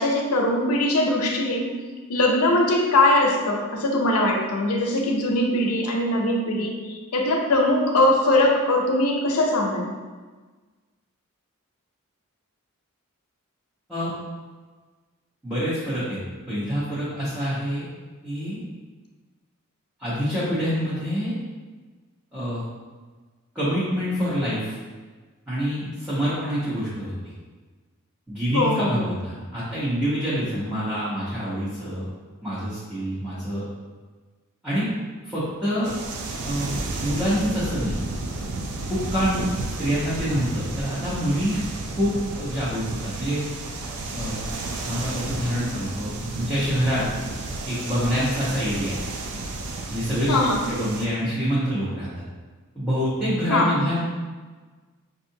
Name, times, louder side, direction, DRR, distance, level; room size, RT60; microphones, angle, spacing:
voice 1, 0.0-1.7 2.1-9.9 28.5-29.2 50.3-50.7 53.5-53.9, left 1 dB, 85° left, 1 dB, 0.7 m, -21 dB
voice 2, 15.4-16.2 16.5-17.8 18.2-18.6 20.0-21.3 22.3-22.6 23.5-24.8 25.5-27.1 28.3-32.1 32.4-33.6 34.6-34.9 35.2-35.9 36.4-38.0 38.9-39.4 39.8-41.6 41.9-42.1 42.4-43.4 44.1-44.5 44.8-47.0 47.7-49.0 49.9-50.4 50.7-52.2 52.7-54.0, equal, 5° right, -13 dB, 0.9 m, -26 dB
sound 1, 35.8-51.1, right 2 dB, 80° right, 0.5 m, -32 dB
5.4 x 2.5 x 2.7 m, 1.3 s
head